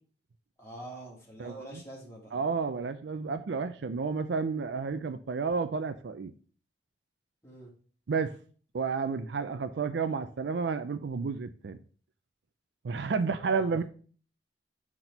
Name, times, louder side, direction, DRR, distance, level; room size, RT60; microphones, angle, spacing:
voice 1, 0.6-2.3 7.4-7.7 13.6-13.8, right 1 dB, 15° left, 2.3 m, -45 dB
voice 2, 1.4-1.8 2.3-6.3 8.1-8.4 8.7-11.8 12.8-13.8, right 5 dB, 70° right, 0.4 m, -31 dB
6.0 x 4.4 x 5.1 m
head